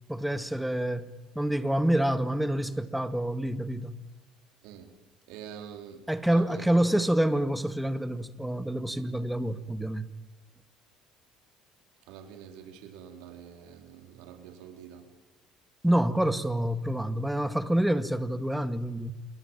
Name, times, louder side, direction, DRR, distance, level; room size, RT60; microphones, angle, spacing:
voice 1, 0.1-4.0 6.1-10.1 15.8-19.1, right 1 dB, 5° right, 2.0 m, -27 dB
voice 2, 5.3-6.7 12.1-15.0, right 8 dB, 80° right, 4.2 m, -46 dB
28.0 x 22.0 x 9.1 m
supercardioid pair, 85°, 0 cm